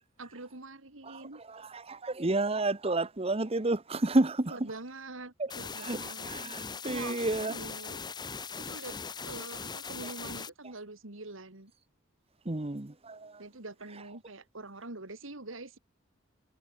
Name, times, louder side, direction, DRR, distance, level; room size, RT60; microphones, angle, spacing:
voice 1, 0.2-1.4 4.5-6.3 6.8-8.0 8.6-9.0 9.2-11.7 13.4-15.8, right 2 dB, 80° right, 2.8 m, -44 dB
voice 2, 1.7-4.6 5.8-6.0 6.2-7.5 12.5-13.3, right 2 dB, 30° right, 1.0 m, -30 dB
sound 1, 5.5-10.5, left 5 dB, 20° left, 0.8 m, -40 dB
head